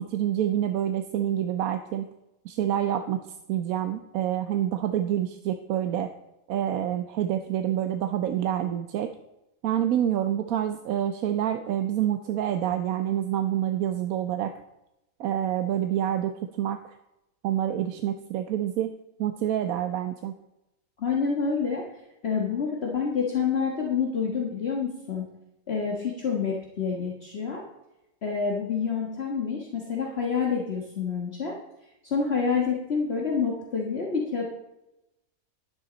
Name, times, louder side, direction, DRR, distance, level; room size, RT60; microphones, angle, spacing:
voice 1, 0.0-2.1 2.4-3.2 3.5-6.1 6.5-9.1 9.6-14.5 15.2-16.8 17.4-18.9 19.2-20.3, right 11 dB, 85° right, 7 dB, 1.1 m, -27 dB
voice 2, 21.0-21.8 22.2-25.2 25.7-27.6 28.2-31.5 32.0-34.4, left 5 dB, 50° left, -2 dB, 1.7 m, -28 dB
11.5 x 10.5 x 4.0 m, 0.91 s
omnidirectional pair, 1.5 m